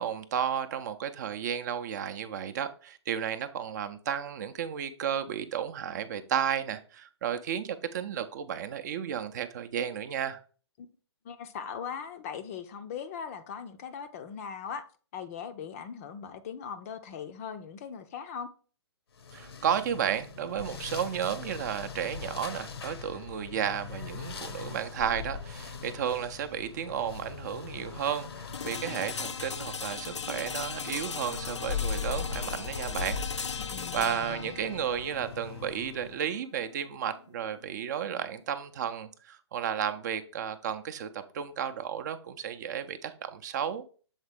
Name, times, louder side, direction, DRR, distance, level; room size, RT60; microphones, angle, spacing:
voice 1, 0.0-10.4 19.3-33.2 33.9-43.8, right 8 dB, 40° right, 0.6 m, -33 dB
voice 2, 11.2-14.8 15.1-18.5 33.5-34.5, left 7 dB, 30° left, 0.5 m, -40 dB
sound 1, 19.2-36.3, left 5 dB, 60° left, 0.8 m, -40 dB
sound 2, 28.5-38.4, left 6 dB, 85° left, 0.4 m, -39 dB
7.2 x 3.9 x 3.5 m
figure-of-eight pair, 130°, 15 cm